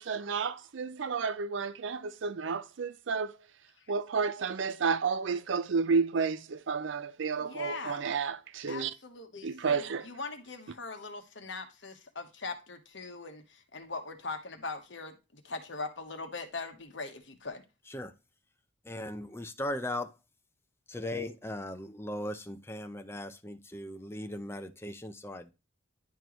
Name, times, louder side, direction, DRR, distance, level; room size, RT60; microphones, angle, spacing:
voice 1, 0.0-3.3 3.9-8.9 9.4-10.1, right 5 dB, 65° right, 0.4 m, -31 dB
voice 2, 7.4-8.0 8.7-17.6, left 3 dB, 60° left, 1.2 m, -41 dB
voice 3, 18.8-20.2 20.9-25.5, left 1 dB, 10° left, 0.6 m, -38 dB
10.5 x 4.5 x 3.0 m
head